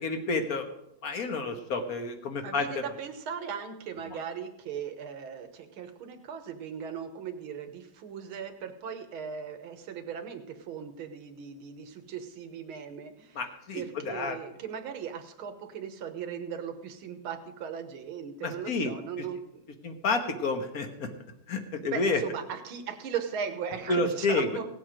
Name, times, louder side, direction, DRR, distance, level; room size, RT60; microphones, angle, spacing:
voice 1, 0.0-0.7 1.0-2.8 13.3-14.4 18.4-18.9 19.8-21.1 21.5-22.2 23.9-24.5, left 3 dB, 50° left, 6 dB, 1.5 m, -29 dB
voice 2, 2.4-13.4 13.7-19.6 21.8-24.7, right 7 dB, 80° right, 7 dB, 2.0 m, -38 dB
17.5 x 7.8 x 5.0 m, 0.83 s
omnidirectional pair, 2.3 m